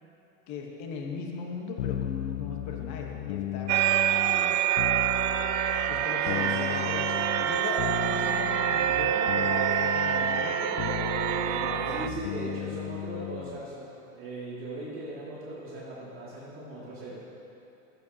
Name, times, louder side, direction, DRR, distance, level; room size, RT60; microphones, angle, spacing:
voice 1, 0.5-3.7 5.9-12.1, left 4 dB, 40° left, 1 dB, 1.4 m, -39 dB
sound 1, 1.8-13.6, left 13 dB, 90° left, 0.6 m, -35 dB
sound 2, 3.7-12.1, right 10 dB, 60° right, 0.5 m, -26 dB
voice 2, 6.2-6.7 11.8-17.2, right 1 dB, 30° right, -8 dB, 2.3 m, -39 dB
16.0 x 7.8 x 2.9 m, 2.8 s
supercardioid pair, 135°, 40 cm